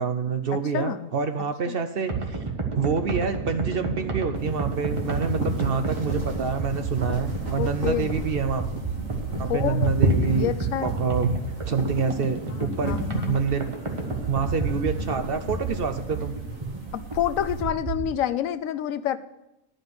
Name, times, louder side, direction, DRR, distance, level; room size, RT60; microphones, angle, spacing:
voice 1, 0.0-2.4 2.7-8.6 9.4-10.5 10.8-11.3 11.7-13.0 13.3-13.7 14.3-16.4, right 5 dB, 55° right, 8 dB, 0.8 m, -27 dB
voice 2, 0.7-1.1 1.7-1.8 7.6-8.1 9.5-11.0 12.5-13.4 16.9-19.2, left 11 dB, 80° left, 13 dB, 1.0 m, -28 dB
sound 1, 2.1-18.1, right 4 dB, 25° right, 1.3 m, -31 dB
sound 2, 4.4-17.6, right 1 dB, 80° right, 2.0 m, -31 dB
11.5 x 5.1 x 7.8 m, 0.91 s
omnidirectional pair, 1.4 m